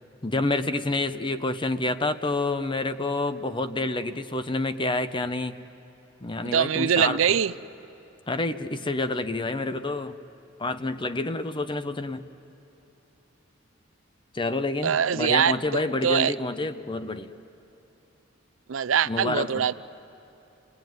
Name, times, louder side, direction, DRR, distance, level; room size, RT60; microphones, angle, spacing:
voice 1, 0.2-5.5 6.2-7.4 8.3-10.2 10.6-12.2 14.3-17.3 19.1-19.7, left 2 dB, 25° left, 11 dB, 0.8 m, -28 dB
voice 2, 6.4-7.5 14.8-16.3 18.7-19.7, right 8 dB, 85° right, 16 dB, 0.5 m, -23 dB
29.5 x 19.5 x 9.4 m, 3.0 s
head